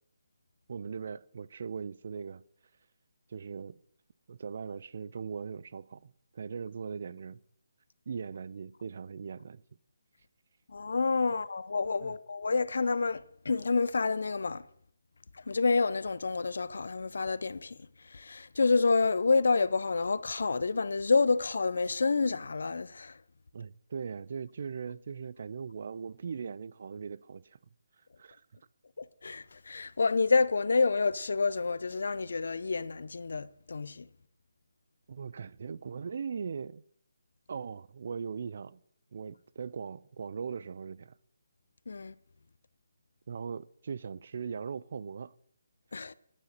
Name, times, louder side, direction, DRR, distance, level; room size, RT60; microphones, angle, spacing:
voice 1, 0.7-2.4 3.3-3.8 4.3-7.4 8.1-9.6 12.0-12.2 23.5-27.6 28.2-28.4 35.1-36.8 37.5-38.8 39.1-41.1 43.3-45.3, right 6 dB, 50° right, 0.4 m, -39 dB
voice 2, 10.7-14.6 15.3-17.8 18.0-23.2 29.0-34.1 41.9-42.1 45.9-46.1, left 4 dB, 70° left, 0.6 m, -28 dB
9.7 x 6.6 x 8.0 m
hypercardioid pair, 160°, 0 cm